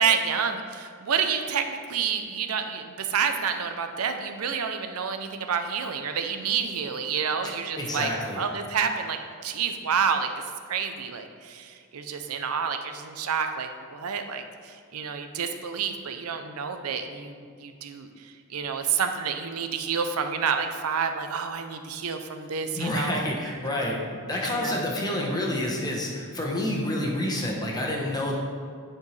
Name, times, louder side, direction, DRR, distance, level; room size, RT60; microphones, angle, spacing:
voice 1, 0.0-8.1 8.4-10.3 10.7-23.3 23.9-24.9, right 6 dB, 75° right, 7 dB, 0.6 m, -29 dB
voice 2, 7.4-8.4 22.7-24.0 24.3-28.4, left 1 dB, 20° left, -1 dB, 1.0 m, -28 dB
9.8 x 4.5 x 3.3 m, 2.2 s
head